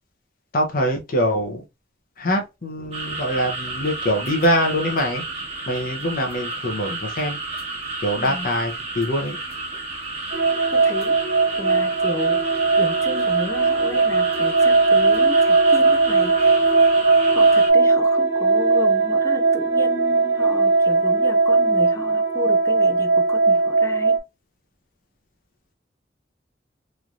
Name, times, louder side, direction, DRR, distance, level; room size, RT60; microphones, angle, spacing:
voice 1, 0.5-1.6 2.2-5.2 5.7-7.4 8.0-9.4, equal, 55° left, 0.7 m, -23 dB
sound 1, 2.9-17.7, right 3 dB, 35° right, 1.2 m, -32 dB
voice 2, 8.2-8.5 10.7-11.2 11.6-12.4 12.8-16.7 17.3-24.2, left 3 dB, 15° left, 0.3 m, -33 dB
sound 2, 10.3-24.2, right 3 dB, 65° right, 0.7 m, -18 dB
3.2 x 2.6 x 2.3 m
head